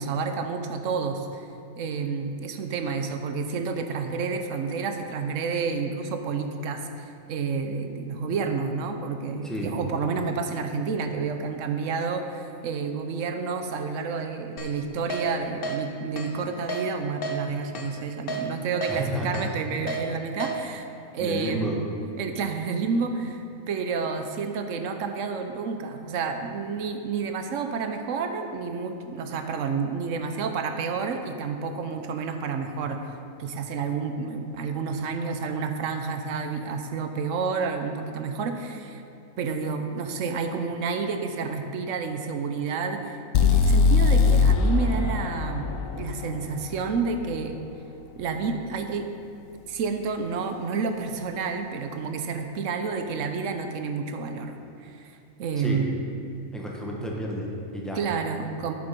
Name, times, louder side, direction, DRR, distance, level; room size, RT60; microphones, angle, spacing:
voice 1, 0.0-1.5 1.8-20.9 21.1-21.7 22.2-33.0 33.4-39.0 39.4-45.7 45.9-47.6 48.2-49.1 49.7-56.0 58.0-58.7, right 5 dB, 65° right, 6 dB, 1.0 m, -30 dB
voice 2, 9.4-9.7 18.9-19.3 21.2-21.8 55.6-55.8 56.5-58.0, equal, ahead, -3 dB, 1.1 m, -31 dB
Keyboard (musical), 14.6-14.7 15.1-15.2 15.6-15.8 16.2-16.3 16.7-16.8 17.2-17.4 17.8-17.9 18.3-18.4 18.8-19.0 19.3-19.5 19.9-20.0 20.4-20.5, right 1 dB, 45° left, 0.9 m, -31 dB
sound 1, 43.3-47.3, left 4 dB, 70° left, 0.9 m, -21 dB
7.9 x 7.0 x 5.3 m, 2.6 s
omnidirectional pair, 1.5 m